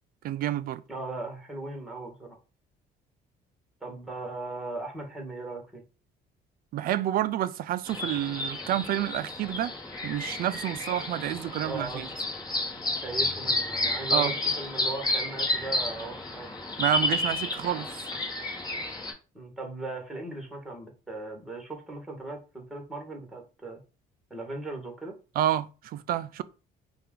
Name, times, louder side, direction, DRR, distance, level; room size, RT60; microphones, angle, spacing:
voice 1, 0.2-0.8 6.7-9.7 10.0-12.1 14.1-14.3 16.8-17.9 25.4-26.4, right 12 dB, 60° right, 0.4 m, -29 dB
voice 2, 0.9-2.4 3.8-5.8 11.6-12.1 13.0-16.5 19.3-23.8 24.3-25.1, right 2 dB, ahead, 1.6 m, -38 dB
sound 1, 7.9-19.1, left 2 dB, 25° left, 1.3 m, -31 dB
5.6 x 2.4 x 3.8 m
cardioid pair, 110°, 17 cm